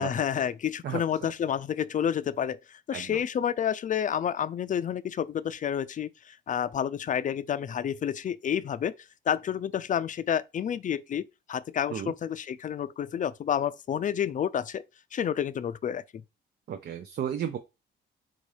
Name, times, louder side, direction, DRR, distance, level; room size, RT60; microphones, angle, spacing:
voice 1, 0.0-8.9 9.3-14.8 15.1-16.0, left 9 dB, 40° left, 0.4 m, -29 dB
voice 2, 0.8-1.3 2.9-3.2 11.9-12.1 16.7-17.6, right 9 dB, 55° right, 0.6 m, -34 dB
3.8 x 2.7 x 4.8 m
cardioid pair, 90°, 20 cm